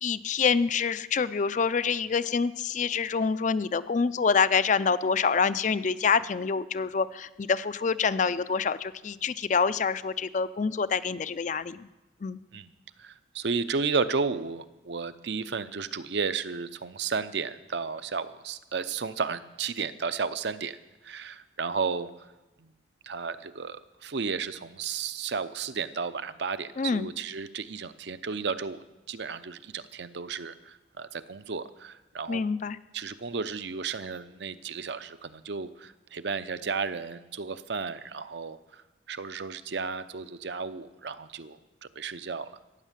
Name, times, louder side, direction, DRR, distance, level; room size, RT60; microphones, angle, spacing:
voice 1, 0.0-11.9 12.2-12.4 26.8-27.1 32.3-32.8, left 5 dB, 40° left, 15 dB, 0.4 m, -26 dB
voice 2, 13.0-20.8 21.0-22.1 22.6-22.7 23.0-28.8 29.1-32.4 32.9-38.8 39.1-41.6 42.0-42.5, right 5 dB, 60° right, 13 dB, 0.6 m, -33 dB
15.0 x 9.2 x 7.4 m, 1.1 s
head